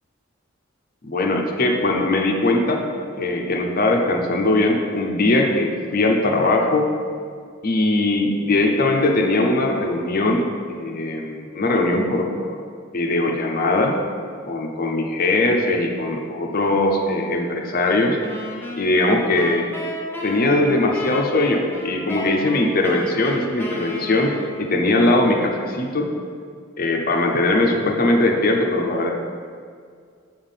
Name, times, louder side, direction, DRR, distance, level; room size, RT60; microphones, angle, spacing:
voice 1, 1.0-2.8 3.2-6.9 7.6-12.6 12.9-13.9 14.5-18.2 18.8-19.7 20.2-26.1 26.8-29.1, left 2 dB, 45° left, 2 dB, 0.7 m, -20 dB
sound 1, 18.2-24.8, equal, 10° left, 0.9 m, -33 dB
7.1 x 3.6 x 5.6 m, 2.1 s
head